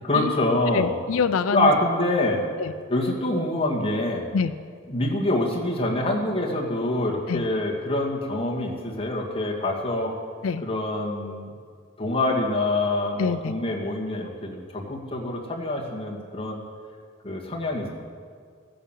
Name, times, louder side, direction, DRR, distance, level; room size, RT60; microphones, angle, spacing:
voice 1, 0.0-1.0 1.5-2.4 2.9-4.3 4.9-10.1 10.6-11.5 12.0-16.6 17.2-17.9, left 1 dB, 25° left, -2 dB, 2.2 m, -25 dB
voice 2, 0.7-1.7 2.6-2.7 4.3-4.5 7.3-7.4 10.4-10.6 13.2-13.5, left 5 dB, 90° left, 11 dB, 0.4 m, -25 dB
15.0 x 10.0 x 7.5 m, 2.1 s
head